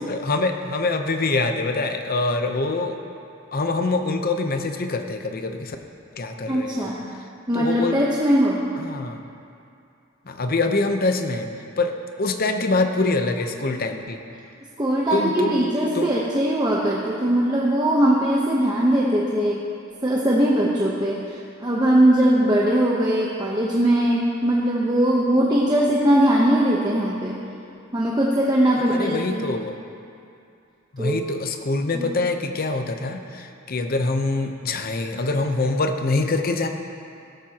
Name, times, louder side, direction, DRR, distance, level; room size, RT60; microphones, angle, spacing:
voice 1, 0.1-3.0 3.5-5.8 6.2-6.9 7.5-8.1 8.8-9.2 10.3-11.5 11.8-14.2 15.1-15.7 15.9-16.1 28.9-29.8 30.9-36.7, left 3 dB, 45° left, 5 dB, 0.8 m, -24 dB
voice 2, 6.5-7.0 7.5-8.6 14.8-19.6 20.0-27.4 27.9-29.5 31.0-31.2 31.9-32.1, right 1 dB, 20° right, -4 dB, 1.0 m, -20 dB
16.5 x 13.5 x 2.9 m, 2.5 s
head